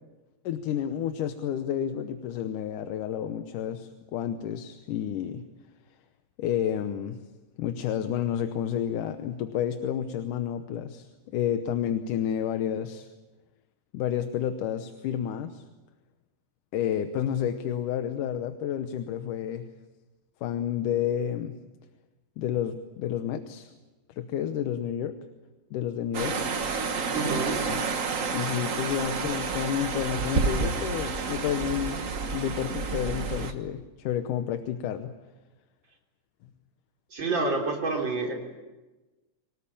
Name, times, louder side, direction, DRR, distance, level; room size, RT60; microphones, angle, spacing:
voice 1, 0.5-5.4 6.4-7.2 7.6-13.1 13.9-15.6 16.7-19.7 20.4-21.6 22.4-23.7 24.1-25.2 25.7-26.4 27.2-27.3 27.7-27.8 28.3-32.0 32.3-35.1, left 9 dB, 85° left, 8 dB, 2.5 m, -30 dB
sound 1, 26.1-33.5, right 4 dB, 85° right, 0.7 m, -30 dB
voice 2, 27.1-27.6 37.1-38.3, right 3 dB, 35° right, 1 dB, 4.1 m, -28 dB
25.5 x 18.0 x 8.6 m, 1.2 s
omnidirectional pair, 3.6 m